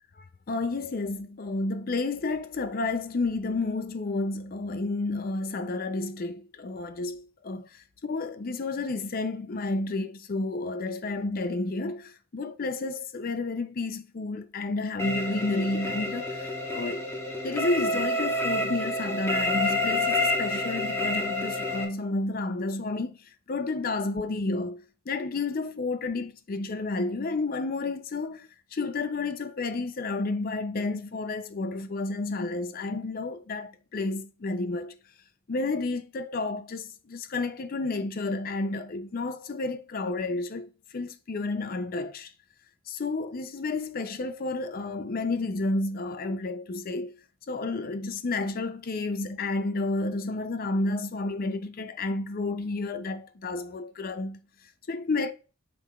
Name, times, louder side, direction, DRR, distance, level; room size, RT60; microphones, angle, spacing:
voice 1, 0.5-17.1 17.4-35.0 35.5-42.3 42.9-47.2 47.5-54.4 54.9-55.3, left 3 dB, 45° left, 0.4 m, -31 dB
sound 1, 15.0-21.8, left 1 dB, 15° left, 1.2 m, -28 dB
7.7 x 5.8 x 2.3 m
head